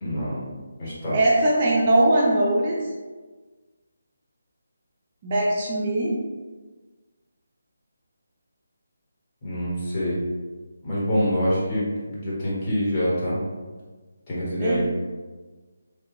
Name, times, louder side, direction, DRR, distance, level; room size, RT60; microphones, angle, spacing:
voice 1, 0.0-0.5 0.8-1.2 9.4-10.2 10.8-13.4 14.3-14.8, equal, 25° left, -9 dB, 1.4 m, -25 dB
voice 2, 1.1-2.8 5.2-6.2 14.6-14.8, right 1 dB, 35° right, -5 dB, 0.6 m, -21 dB
3.2 x 2.4 x 3.1 m, 1.3 s
figure-of-eight pair, 160°, 0 cm